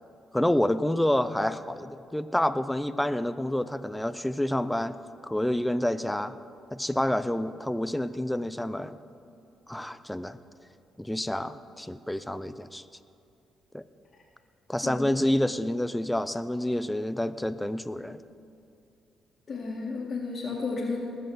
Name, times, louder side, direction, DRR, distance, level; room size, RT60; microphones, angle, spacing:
voice 1, 0.3-5.0 5.2-6.4 6.7-9.0 9.7-10.4 11.0-12.8 13.7-13.8 14.7-18.2, left 1 dB, 5° left, 13 dB, 0.5 m, -28 dB
voice 2, 19.5-21.0, left 4 dB, 40° left, -5 dB, 2.0 m, -32 dB
19.5 x 6.9 x 6.4 m, 2.5 s
cardioid pair, 90°, 0 cm